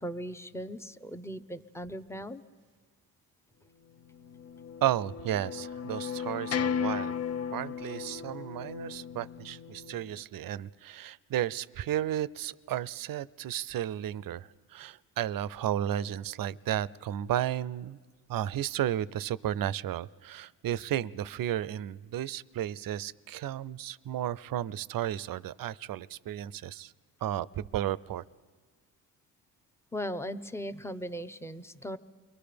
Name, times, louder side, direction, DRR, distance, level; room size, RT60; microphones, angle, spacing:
voice 1, 0.0-2.4 29.9-32.0, equal, 5° left, 11 dB, 0.8 m, -38 dB
sound 1, 4.2-10.2, left 7 dB, 35° left, 0.6 m, -35 dB
voice 2, 4.8-7.1 7.5-18.0 18.3-26.9 27.2-28.2, right 11 dB, 55° right, 20 dB, 0.6 m, -33 dB
29.5 x 22.5 x 5.1 m, 1.5 s
cardioid pair, 75°, 42 cm